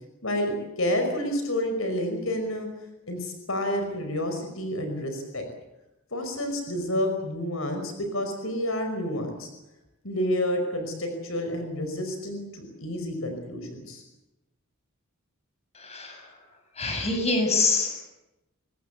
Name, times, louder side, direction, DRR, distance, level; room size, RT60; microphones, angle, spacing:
voice 1, 0.2-2.7 3.1-5.5 6.1-9.5 10.0-14.0, left 1 dB, 75° left, 5 dB, 5.3 m, -29 dB
voice 2, 15.8-16.2 16.8-18.0, left 3 dB, 30° left, 4 dB, 7.5 m, -25 dB
25.0 x 19.5 x 8.3 m, 0.92 s
head